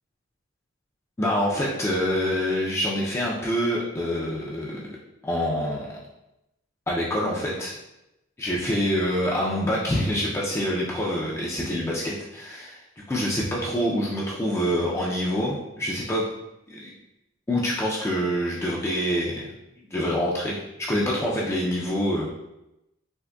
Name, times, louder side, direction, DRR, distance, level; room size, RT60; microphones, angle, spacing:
voice 1, 1.2-5.0 5.2-6.0 6.9-7.7 8.4-12.8 13.1-16.2 16.7-16.9 17.5-19.5 19.9-22.3, equal, 15° left, -5 dB, 0.4 m, -26 dB
3.7 x 2.6 x 2.3 m, 0.90 s
head